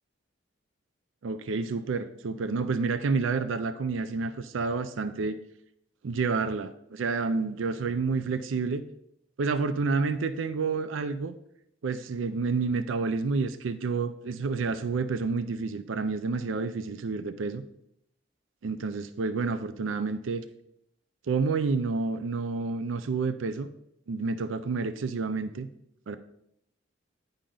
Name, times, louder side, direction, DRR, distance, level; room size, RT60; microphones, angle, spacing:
voice 1, 1.2-5.4 6.0-8.8 9.4-11.3 11.8-17.6 18.6-20.4 21.3-23.7 24.1-25.7 26.1-26.2, right 4 dB, 85° right, 11 dB, 0.4 m, -29 dB
10.0 x 5.1 x 3.8 m, 0.76 s
head